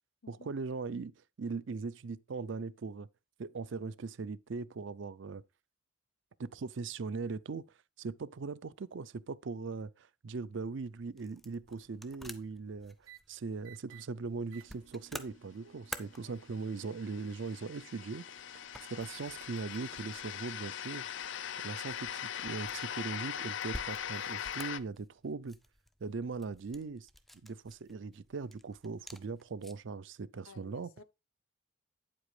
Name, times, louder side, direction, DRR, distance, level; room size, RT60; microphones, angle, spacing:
voice 1, 0.3-3.1 3.4-5.4 6.4-7.7 8.0-12.9 13.3-18.3 18.9-21.1 21.6-25.6 26.0-27.1 27.4-30.9, right 4 dB, 60° right, 0.5 m, -40 dB
sound 1, 10.4-30.0, equal, ahead, 0.4 m, -52 dB
sound 2, 11.3-11.6 13.0-13.2 13.6-14.0 14.5-22.9, right 6 dB, 85° right, 0.9 m, -60 dB
sound 3, 16.4-24.8, left 9 dB, 60° left, 0.4 m, -41 dB
voice 2, 30.5-31.0, left 4 dB, 90° left, 0.7 m, -54 dB
9.0 x 7.7 x 3.2 m
head